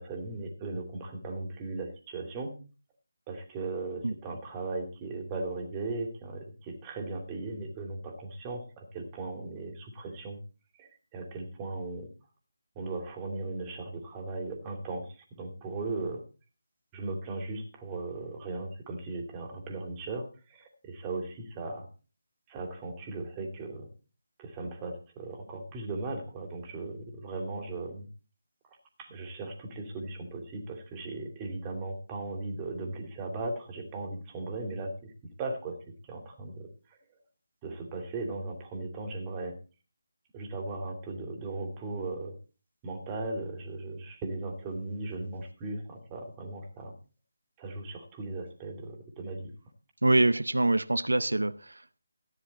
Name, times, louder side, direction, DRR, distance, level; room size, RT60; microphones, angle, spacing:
voice 1, 0.0-2.5 3.3-10.4 10.8-12.1 12.7-16.2 16.9-21.9 22.5-23.9 24.4-28.1 29.0-35.1 35.4-35.8 36.0-37.0 37.6-39.6 40.3-42.4 42.8-46.9 47.6-49.5, right 2 dB, 20° right, 2.6 m, -37 dB
voice 2, 50.0-52.0, right 2 dB, 80° right, 0.6 m, -25 dB
14.0 x 9.9 x 4.2 m
figure-of-eight pair, 155°, 0 cm